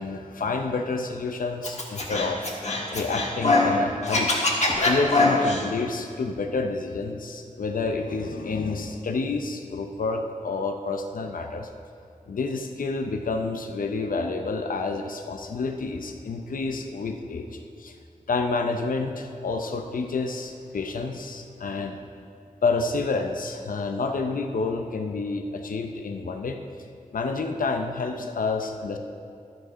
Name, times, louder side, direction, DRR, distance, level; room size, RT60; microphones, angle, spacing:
voice 1, 0.0-2.4 2.9-4.3 4.8-11.7 12.3-17.9 18.3-22.0 22.6-26.6 27.1-29.0, left 3 dB, 75° left, 5 dB, 0.6 m, -29 dB
Scratching (performance technique), 1.6-3.7 4.0-5.6, left 2 dB, 55° left, 1.4 m, -22 dB
11.5 x 6.5 x 5.1 m, 2.4 s
wide cardioid pair, 95°, 14 cm